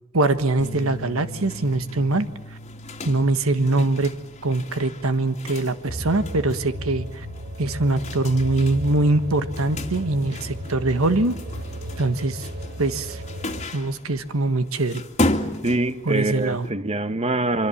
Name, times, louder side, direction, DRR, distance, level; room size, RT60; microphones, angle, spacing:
voice 1, 0.1-2.3 3.0-4.1 4.4-7.3 7.6-11.4 12.0-12.5 12.8-13.2 13.7-15.0 16.0-16.7, right 2 dB, 75° right, 10 dB, 1.4 m, -22 dB
sound 1, 0.6-6.9, equal, 90° left, 1.6 m, -42 dB
sound 2, 0.6-16.7, left 1 dB, 30° left, 2.3 m, -35 dB
sound 3, 5.9-13.7, equal, 50° right, 1.8 m, -34 dB
voice 2, 15.6-17.7, right 2 dB, 30° right, 11 dB, 1.3 m, -24 dB
25.5 x 25.0 x 7.3 m, 1.1 s
head